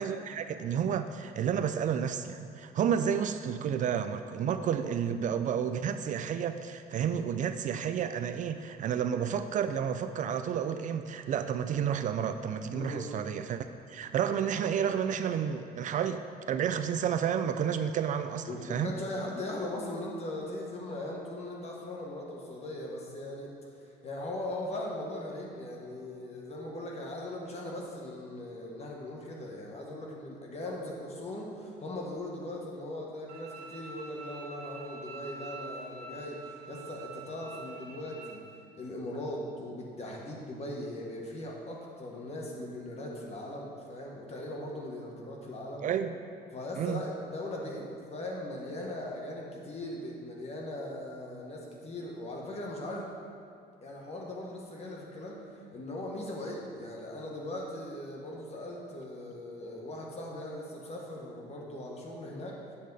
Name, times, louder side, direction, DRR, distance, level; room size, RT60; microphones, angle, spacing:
voice 1, 0.0-18.9 45.8-46.2 46.8-47.0, right 8 dB, 50° right, 9 dB, 0.4 m, -31 dB
voice 2, 12.7-13.1 18.5-23.5 24.0-36.4 36.7-38.4 38.7-45.8 46.5-53.1 53.8-62.6, left 1 dB, 40° left, -2 dB, 1.6 m, -39 dB
Bowed string instrument, 33.3-38.3, right 3 dB, 75° right, 1.1 m, -46 dB
8.4 x 6.3 x 4.1 m, 2.5 s
cardioid pair, 110°, 17 cm